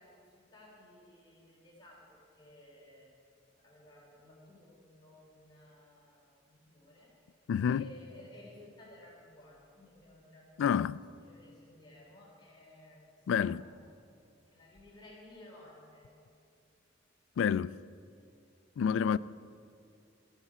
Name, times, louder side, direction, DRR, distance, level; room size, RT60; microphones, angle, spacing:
voice 1, 0.0-3.1 3.6-7.1 7.6-10.7 11.2-13.0 13.4-14.1 14.5-16.1, left 1 dB, 25° left, 3.4 m, -56 dB
voice 2, 7.5-7.9 10.6-11.0 13.3-13.6 17.4-17.8 18.8-19.2, left 7 dB, 85° left, 0.3 m, -28 dB
14.5 x 13.5 x 4.9 m
head